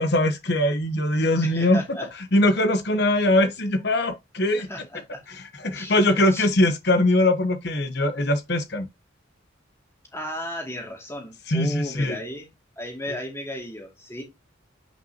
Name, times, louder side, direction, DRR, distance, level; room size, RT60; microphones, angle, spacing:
voice 1, 0.0-1.8 2.3-4.7 5.3-8.9 11.5-12.2, left 1 dB, 55° left, 1.0 m, -21 dB
voice 2, 1.4-2.1 4.6-5.2 5.7-6.5 10.1-12.5 12.8-14.2, equal, 15° left, 2.4 m, -35 dB
8.1 x 5.9 x 2.9 m
head